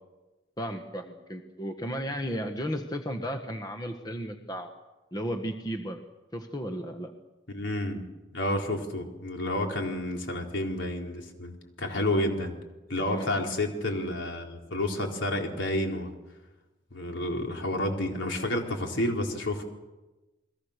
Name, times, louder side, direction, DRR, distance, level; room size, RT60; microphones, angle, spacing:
voice 1, 0.6-4.7 5.1-6.0 6.3-7.1 12.1-12.2 13.0-13.3, equal, 20° left, 5 dB, 1.5 m, -34 dB
voice 2, 7.5-8.0 8.3-12.5 12.9-16.1 16.9-19.6, left 1 dB, 75° left, 2 dB, 4.2 m, -30 dB
29.5 x 21.5 x 6.7 m, 1.1 s
head